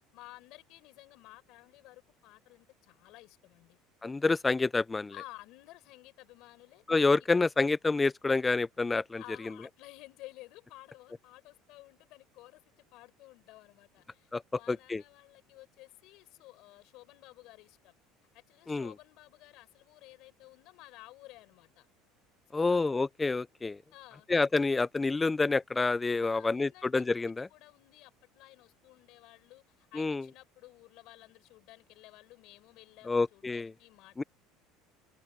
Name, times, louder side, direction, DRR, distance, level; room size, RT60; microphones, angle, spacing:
voice 1, 0.1-3.8 5.1-6.8 9.2-18.0 18.3-21.9 22.5-22.8 23.9-24.3 26.2-34.3, left 19 dB, 60° left, 5.8 m, -54 dB
voice 2, 4.0-5.1 6.9-9.2 14.3-14.4 14.7-15.0 18.7-18.9 22.5-23.8 24.3-27.5 29.9-30.3 33.1-33.7 34.2-34.3, left 3 dB, 10° left, 0.3 m, -28 dB
cardioid pair, 155°, 0 cm